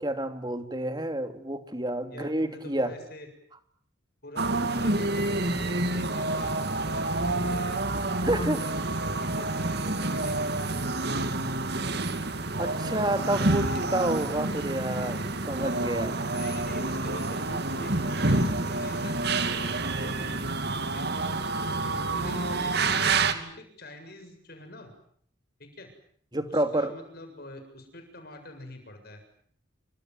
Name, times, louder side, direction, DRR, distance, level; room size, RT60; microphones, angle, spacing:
voice 1, 0.0-2.9 8.2-8.6 12.6-15.2 15.5-16.2 26.3-26.9, right 1 dB, 20° right, 8 dB, 2.9 m, -29 dB
voice 2, 2.1-3.3 4.2-6.6 6.9-8.7 9.0-10.8 11.1-12.0 13.6-14.3 16.3-20.5 20.9-21.1 21.9-24.9 25.6-25.9 26.5-29.2, left 1 dB, 50° left, 6 dB, 7.5 m, -45 dB
sound 1, 4.4-23.3, right 2 dB, 55° right, 2.6 m, -28 dB
29.0 x 25.5 x 7.9 m, 0.62 s
head